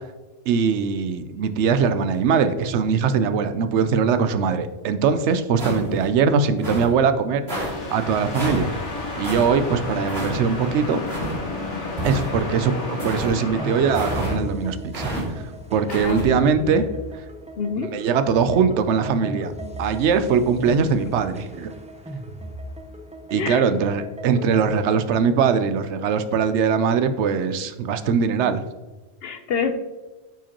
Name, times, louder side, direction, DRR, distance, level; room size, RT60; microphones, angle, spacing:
voice 1, 0.5-8.7 9.1-11.0 12.0-15.1 15.7-16.9 17.9-19.5 19.8-21.7 23.3-28.6, right 6 dB, 80° right, 11 dB, 0.9 m, -21 dB
sound 1, 5.6-6.1 6.6-6.9 7.5-7.7 8.3-8.6 9.2-9.5 10.1-10.4 11.1-11.4 12.0-12.5 13.0-13.3 13.9-14.4 14.9-15.2 15.9-16.3, right 1 dB, 60° right, 2.7 m, -29 dB
sound 2, 7.5-14.3, left 2 dB, 90° left, 1.7 m, -31 dB
sound 3, 13.6-24.9, right 1 dB, 10° right, 0.4 m, -37 dB
voice 2, 15.9-16.8 17.6-17.9 23.3-23.6 29.2-29.7, left 5 dB, 65° left, 8 dB, 0.8 m, -27 dB
9.0 x 4.9 x 2.9 m, 1.2 s
omnidirectional pair, 1.2 m